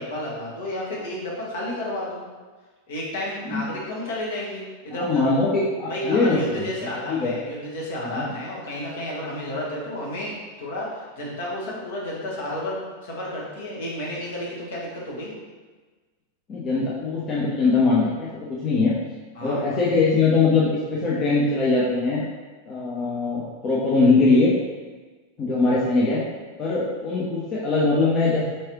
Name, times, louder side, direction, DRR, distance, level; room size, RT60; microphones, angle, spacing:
voice 1, 0.0-2.2 2.9-5.3 5.9-15.3 19.3-19.7, left 1 dB, 60° left, -5 dB, 1.3 m, -31 dB
voice 2, 4.9-6.7 7.1-7.3 8.0-8.2 16.5-18.3 18.6-18.9 19.4-22.3 22.7-24.5 25.4-26.2 26.6-28.4, left 3 dB, 30° left, -7 dB, 0.7 m, -21 dB
4.6 x 3.1 x 3.0 m, 1.3 s
figure-of-eight pair, 90°, 0 cm